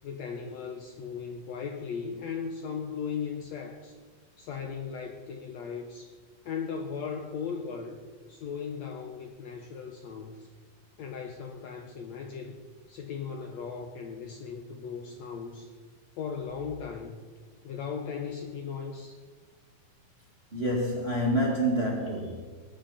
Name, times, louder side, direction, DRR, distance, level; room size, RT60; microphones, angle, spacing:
voice 1, 0.0-3.9 4.4-6.2 6.5-8.0 8.3-10.5 11.0-12.6 12.9-15.7 16.2-17.2 17.6-19.2, left 6 dB, 70° left, 3 dB, 1.8 m, -37 dB
voice 2, 20.5-22.3, equal, 25° right, -2 dB, 1.5 m, -27 dB
20.0 x 10.0 x 4.2 m, 1.5 s
omnidirectional pair, 3.9 m